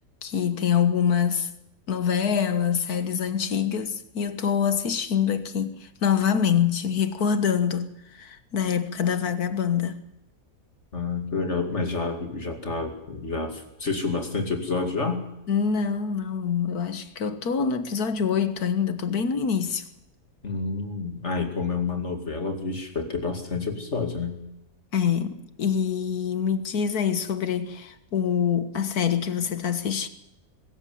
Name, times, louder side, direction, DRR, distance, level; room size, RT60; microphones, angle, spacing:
voice 1, 0.2-1.5 1.9-10.0 15.5-19.9 24.9-30.1, left 7 dB, 60° left, 1.8 m, -25 dB
voice 2, 10.9-15.3 20.4-24.4, left 4 dB, 40° left, 2.7 m, -29 dB
22.0 x 14.0 x 9.3 m
omnidirectional pair, 1.9 m